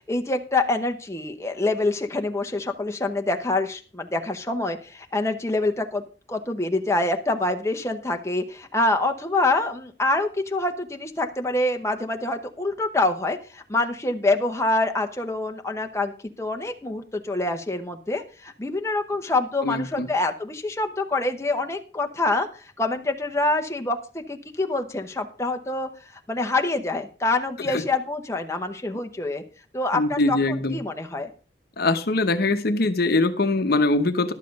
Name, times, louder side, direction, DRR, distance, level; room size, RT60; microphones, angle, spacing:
voice 1, 0.0-6.0 6.3-16.1 16.4-22.5 22.8-24.0 24.3-25.9 26.3-29.4 29.7-31.3, left 2 dB, 15° left, 4 dB, 0.9 m, -26 dB
voice 2, 19.6-20.1 27.6-27.8 29.9-30.8 31.8-34.3, left 2 dB, 60° left, 9 dB, 0.9 m, -22 dB
11.5 x 7.5 x 5.3 m, 0.36 s
head